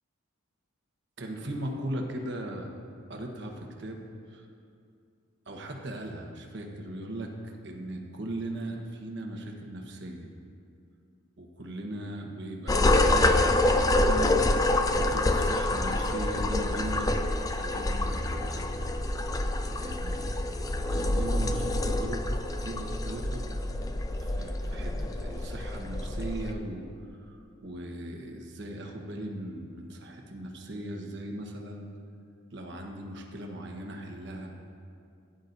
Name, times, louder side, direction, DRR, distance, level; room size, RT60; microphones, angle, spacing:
voice 1, 1.2-2.7 3.1-4.0 4.3-4.5 5.5-10.3 11.4-14.4 14.9-17.1 17.6-18.7 19.8-20.3 20.9-23.5 24.2-31.9 32.5-34.5, right 1 dB, 60° right, 1 dB, 1.3 m, -38 dB
sound 1, 12.7-26.5, left 2 dB, 15° left, 0.4 m, -27 dB
16.5 x 10.0 x 2.7 m, 2.4 s
head